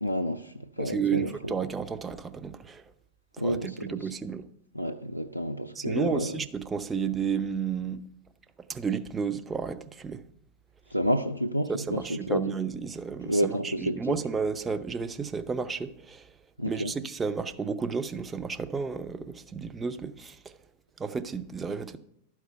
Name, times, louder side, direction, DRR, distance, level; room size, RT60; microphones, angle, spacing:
voice 1, 0.0-1.6 3.4-4.1 4.8-6.4 10.9-12.4 13.3-14.2 16.6-16.9, equal, 90° left, 0.3 m, -30 dB
voice 2, 0.8-2.9 3.4-4.5 5.8-8.0 8.7-10.2 11.7-16.3 16.7-20.6 21.0-22.0, right 5 dB, 15° right, 0.5 m, -32 dB
12.0 x 4.7 x 5.6 m
figure-of-eight pair, 90°, 0 cm